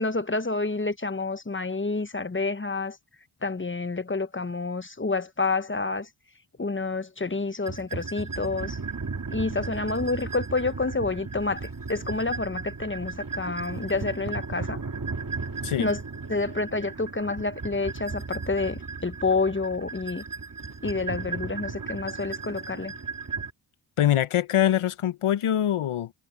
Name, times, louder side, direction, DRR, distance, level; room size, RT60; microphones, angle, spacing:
voice 1, 0.0-3.0 3.4-6.1 6.6-8.8 9.3-14.8 15.8-16.0 16.3-20.2 20.8-22.9, left 3 dB, 25° left, 1.0 m, -28 dB
sound 1, 7.6-23.5, right 4 dB, 40° right, 2.0 m, -35 dB
voice 2, 24.0-26.1, left 11 dB, 80° left, 0.9 m, -23 dB
cardioid pair, 50°, 50 cm